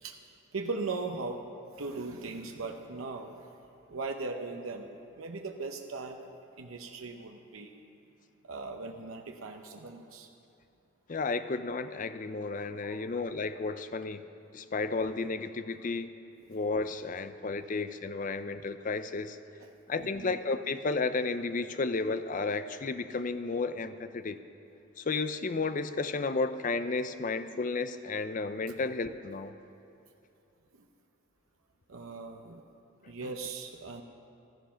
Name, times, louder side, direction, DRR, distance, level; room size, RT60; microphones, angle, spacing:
voice 1, 0.0-3.5 3.9-6.3 6.6-7.7 8.4-10.3 12.8-13.0 16.4-16.5 17.5-17.6 18.2-18.3 19.6-19.7 19.9-20.3 30.7-30.8 31.9-32.6 33.0-34.0, right 3 dB, 80° right, 3 dB, 0.8 m, -39 dB
voice 2, 11.1-14.2 14.5-16.1 16.5-19.4 19.9-24.4 25.0-29.5, left 3 dB, 40° left, 11 dB, 0.5 m, -32 dB
15.0 x 13.0 x 5.7 m, 2.7 s
head